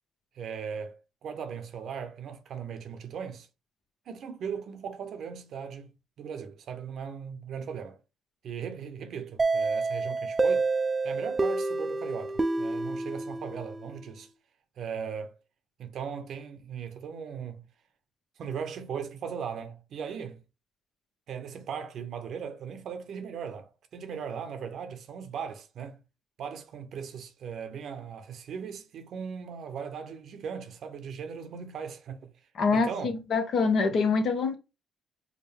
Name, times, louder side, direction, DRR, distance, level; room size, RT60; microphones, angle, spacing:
voice 1, 0.3-3.5 4.1-8.0 8.4-10.7 11.0-14.3 14.8-15.3 15.8-17.6 18.4-20.4 21.3-26.0 26.4-32.3 32.7-33.1, right 7 dB, 65° right, 0.8 m, -38 dB
sound 1, 9.4-14.1, right 3 dB, 25° right, 0.5 m, -28 dB
voice 2, 32.6-34.6, left 4 dB, 60° left, 0.9 m, -25 dB
4.9 x 2.2 x 3.4 m
supercardioid pair, 60°, 0 cm